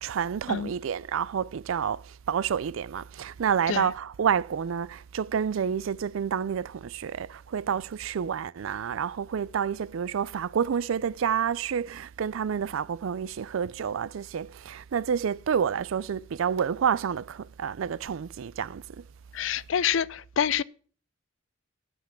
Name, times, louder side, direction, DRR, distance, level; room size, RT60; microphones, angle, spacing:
voice 1, 0.0-19.1, right 7 dB, 75° right, 0.4 m, -29 dB
voice 2, 19.3-20.6, left 8 dB, 65° left, 0.4 m, -27 dB
9.5 x 8.3 x 5.9 m
head